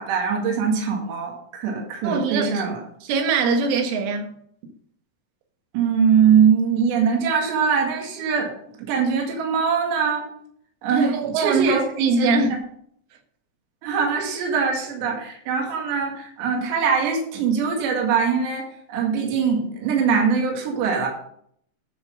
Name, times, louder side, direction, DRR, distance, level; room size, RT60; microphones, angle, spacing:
voice 1, 0.0-2.8 5.7-8.5 8.8-10.3 10.8-11.8 12.2-12.6 13.8-18.6 18.9-21.1, right 6 dB, 70° right, 0 dB, 4.1 m, -22 dB
voice 2, 2.0-2.6 3.0-4.4 10.9-12.6, right 4 dB, 85° right, 4 dB, 3.9 m, -22 dB
11.5 x 6.3 x 5.1 m, 0.66 s
omnidirectional pair, 5.5 m